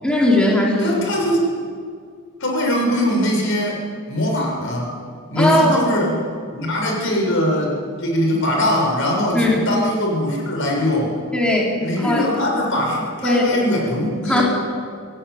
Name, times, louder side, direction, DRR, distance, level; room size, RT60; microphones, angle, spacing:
voice 1, 0.0-1.0 5.4-5.8 9.3-9.7 11.3-12.2 13.2-13.6 14.3-14.4, left 1 dB, 5° left, -4 dB, 4.3 m, -18 dB
voice 2, 0.8-1.4 2.4-3.8 4.1-4.9 5.3-6.1 6.5-11.2 11.8-14.4, left 1 dB, 65° left, 0 dB, 7.2 m, -21 dB
26.0 x 17.0 x 9.7 m, 2.1 s
head